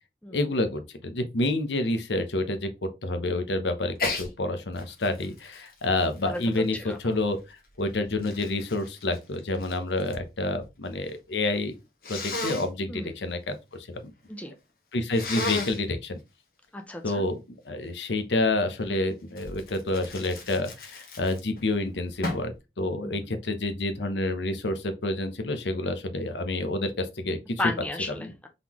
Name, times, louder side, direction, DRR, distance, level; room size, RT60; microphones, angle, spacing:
voice 1, 0.3-11.8 12.1-14.1 14.9-16.2 17.0-17.4 17.7-27.6 28.2-28.3, left 2 dB, 80° left, 0.8 m, -29 dB
Sneeze, 4.0-4.3 4.8-7.1 7.8-10.3 10.5-11.2 12.0-12.7 15.1-15.8 19.4-21.6 22.2-22.6, left 2 dB, 55° left, 1.2 m, -34 dB
voice 2, 6.7-7.1 12.9-13.2 14.3-14.5 16.7-17.2 23.0-23.3 27.6-28.5, left 2 dB, 10° left, 0.6 m, -34 dB
4.0 x 3.7 x 2.9 m
head